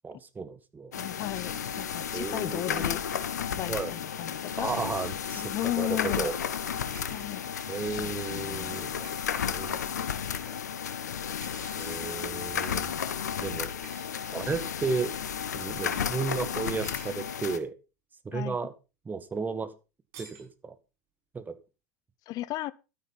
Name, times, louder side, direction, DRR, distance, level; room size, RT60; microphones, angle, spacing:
voice 1, 0.0-0.9 2.1-2.9 3.7-3.9 4.6-6.4 7.7-9.1 9.5-10.2 10.5-10.6 11.7-12.9 13.4-13.7 14.3-15.1 15.5-17.7 18.2-18.7 19.0-19.7 20.2-20.7 21.3-21.6, right 4 dB, 20° right, 1.7 m, -34 dB
sound 1, 0.9-17.6, left 8 dB, 75° left, 1.1 m, -33 dB
voice 2, 0.9-3.0 3.5-4.7 5.3-6.3 7.1-7.5 8.0-8.9 18.3-18.6 22.3-22.7, left 16 dB, 45° left, 0.7 m, -35 dB
sound 2, 6.9-7.4 9.0-9.3 11.4-12.0 13.8-14.1 16.7-17.2 20.1-20.5, right 5 dB, 55° right, 6.8 m, -50 dB
12.0 x 10.0 x 4.1 m
figure-of-eight pair, 80°, 9 cm